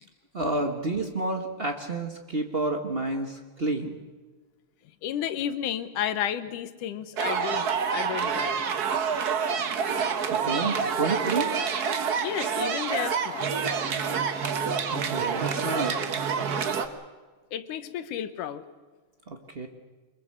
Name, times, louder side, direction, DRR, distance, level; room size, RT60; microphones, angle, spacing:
voice 1, 0.3-4.0 10.3-11.6 14.9-16.1 19.3-19.7, right 2 dB, 75° right, 4 dB, 0.5 m, -30 dB
voice 2, 5.0-8.7 9.1-9.2 12.2-13.6 17.5-18.6, left 10 dB, 85° left, 12 dB, 2.7 m, -32 dB
sound 1, 7.2-16.9, right 6 dB, 55° right, 1.1 m, -27 dB
24.5 x 22.0 x 6.5 m, 1.4 s
omnidirectional pair, 3.5 m